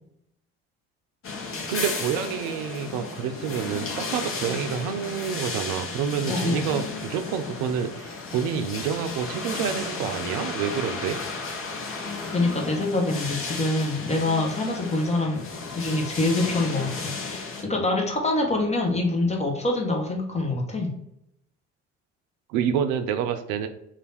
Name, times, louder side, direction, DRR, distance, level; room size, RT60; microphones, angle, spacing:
sound 1, 1.2-17.6, left 4 dB, 35° left, 0.9 m, -34 dB
voice 1, 1.7-11.2 22.5-23.7, right 8 dB, 65° right, 8 dB, 0.6 m, -28 dB
voice 2, 6.3-6.7 12.3-15.4 15.7-20.9, left 2 dB, 20° left, 1 dB, 1.0 m, -25 dB
3.3 x 2.5 x 4.1 m, 0.77 s
hypercardioid pair, 55°, 37 cm